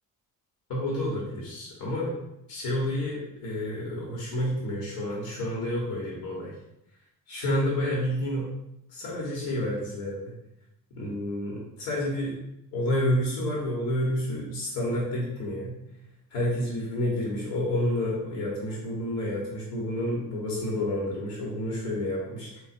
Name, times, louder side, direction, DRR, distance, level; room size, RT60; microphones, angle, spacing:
voice 1, 0.7-2.1 2.5-6.5 7.3-8.5 8.9-10.2 10.9-12.4 12.7-15.8 16.3-22.6, left 1 dB, 65° left, -4 dB, 1.5 m, -29 dB
4.0 x 2.6 x 4.2 m, 0.82 s
figure-of-eight pair, 45°, 48 cm